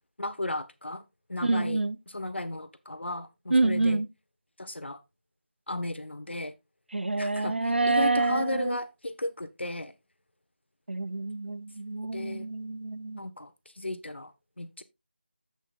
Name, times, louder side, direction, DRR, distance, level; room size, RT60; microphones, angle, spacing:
voice 1, 0.2-1.0 1.3-4.0 4.6-5.0 5.7-6.5 7.1-9.9 12.1-12.5 13.2-14.8, left 1 dB, 80° left, 1.3 m, -35 dB
voice 2, 1.4-2.0 3.5-4.1 6.9-8.8 10.9-13.2, right 2 dB, 70° right, 0.6 m, -27 dB
10.5 x 8.3 x 2.5 m
figure-of-eight pair, 165°, 6 cm